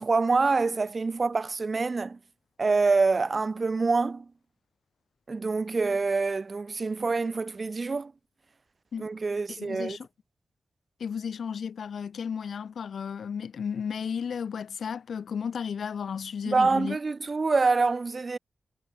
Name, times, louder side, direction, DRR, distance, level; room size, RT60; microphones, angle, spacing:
voice 1, 0.0-2.2 2.6-4.2 5.3-8.1 9.0-10.0 16.4-18.4, right 4 dB, 35° right, 3.4 m, -26 dB
voice 2, 9.5-10.1 11.0-17.0, left 7 dB, 75° left, 1.4 m, -33 dB
wide cardioid pair, 155°, 0 cm